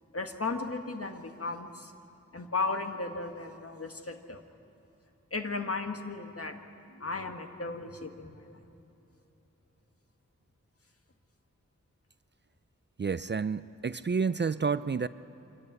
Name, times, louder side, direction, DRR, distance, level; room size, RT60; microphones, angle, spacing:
voice 1, 0.1-1.9 2.3-4.4 5.3-6.6 7.0-8.6, left 3 dB, 50° left, 5 dB, 1.7 m, -35 dB
sound 1, 6.9-9.8, left 3 dB, 70° left, 5.1 m, -61 dB
voice 2, 13.0-15.1, right 5 dB, 35° right, 15 dB, 0.5 m, -30 dB
25.0 x 14.0 x 9.7 m, 2.7 s
cardioid pair, 40°, 30 cm